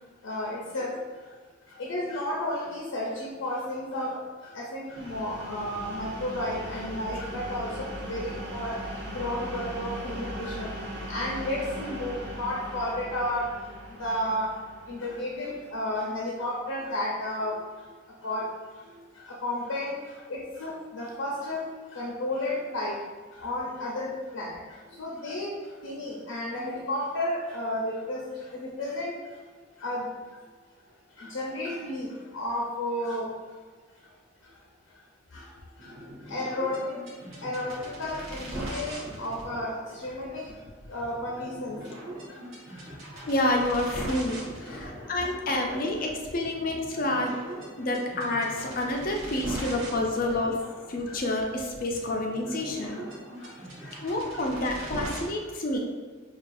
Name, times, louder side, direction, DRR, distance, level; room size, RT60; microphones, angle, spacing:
voice 1, 0.2-1.0 1.8-4.2 4.5-7.8 8.1-8.8 9.1-10.7 11.1-13.5 14.0-14.5 14.9-17.6 18.2-18.5 19.4-19.9 20.3-21.6 22.0-22.9 23.4-24.1 24.3-24.6 25.0-25.5 25.8-28.2 28.6-29.1 29.8-30.1 31.2-32.1 32.3-33.3 36.3-37.0 37.4-39.7 40.0-40.5 40.9-41.8 44.7-44.8 45.2-45.8 53.8-53.9, left 1 dB, 85° left, -3 dB, 0.6 m, -32 dB
sound 1, 4.9-16.5, equal, 55° right, 0.8 m, -39 dB
sound 2, 35.8-55.3, right 1 dB, 80° right, 0.9 m, -41 dB
voice 2, 43.3-47.3 47.8-50.6 50.9-53.0 54.0-55.8, left 1 dB, 45° left, 1 dB, 0.4 m, -28 dB
4.6 x 2.4 x 2.6 m, 1.5 s
head